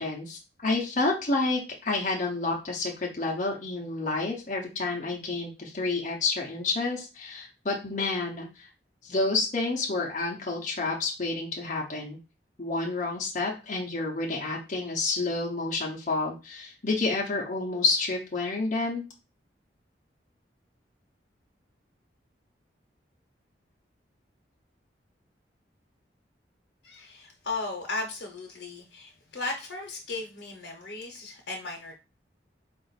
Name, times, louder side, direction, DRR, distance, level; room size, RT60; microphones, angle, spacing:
voice 1, 0.0-8.7 9.0-12.2 12.6-19.0, left 3 dB, 40° left, -1 dB, 0.7 m, -29 dB
voice 2, 26.8-31.9, left 3 dB, 75° left, 1 dB, 0.8 m, -36 dB
3.9 x 2.5 x 4.0 m, 0.30 s
head